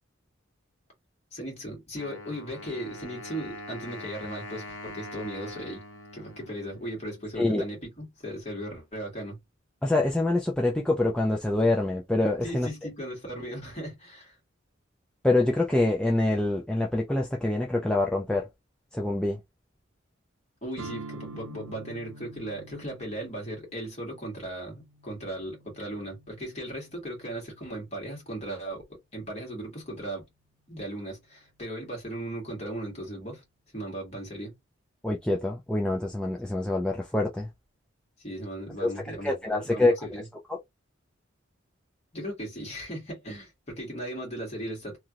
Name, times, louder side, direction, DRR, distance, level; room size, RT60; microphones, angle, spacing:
voice 1, 1.3-5.8 6.1-9.4 12.4-14.4 20.6-30.3 30.7-33.4 33.7-34.5 38.2-40.2 42.1-45.0, right 1 dB, 30° left, 1.7 m, -37 dB
Wind instrument woodwind instrument, 2.0-7.6, left 1 dB, 70° left, 0.9 m, -43 dB
voice 2, 7.4-7.7 9.8-12.7 15.2-18.5 18.9-19.4 35.0-37.5 38.8-40.0 40.5-40.6, left 2 dB, 5° left, 0.3 m, -25 dB
sound 1, 20.8-28.5, right 3 dB, 85° right, 0.6 m, -47 dB
3.0 x 2.4 x 2.8 m
head